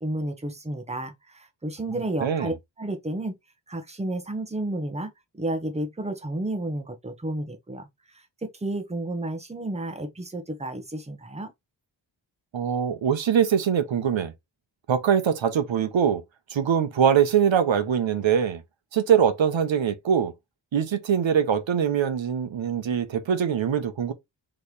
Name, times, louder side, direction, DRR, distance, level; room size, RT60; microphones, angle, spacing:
voice 1, 0.0-3.3 3.7-11.5, right 1 dB, 15° right, 0.9 m, -32 dB
voice 2, 2.2-2.5 12.5-14.3 14.9-16.2 16.5-18.6 18.9-20.3 20.7-24.1, right 8 dB, 80° right, 0.9 m, -23 dB
4.4 x 3.2 x 3.3 m
wide cardioid pair, 110°, 45 cm